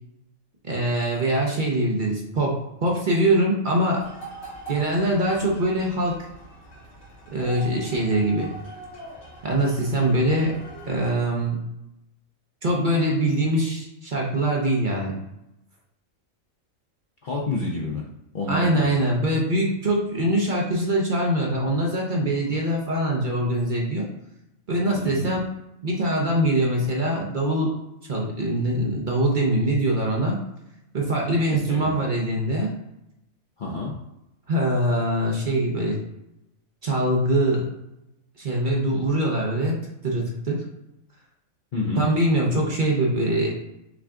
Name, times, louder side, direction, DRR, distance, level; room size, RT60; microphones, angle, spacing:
voice 1, 0.6-4.0 4.7-6.2 7.3-8.5 9.4-10.6 10.9-11.6 12.6-15.2 18.5-24.1 24.7-25.4 25.8-27.7 28.1-30.4 30.9-32.7 34.5-36.0 36.8-37.7 38.4-40.6 41.9-43.5, right 1 dB, 45° right, -2 dB, 0.8 m, -23 dB
sound 1, 4.0-11.1, right 1 dB, 90° left, 1.9 m, -42 dB
voice 2, 17.2-18.1 18.3-18.9 24.9-25.3 31.7-31.9 33.6-33.9 41.7-42.1, left 2 dB, 50° left, -2 dB, 0.6 m, -28 dB
5.8 x 2.3 x 3.6 m, 0.88 s
omnidirectional pair, 1.4 m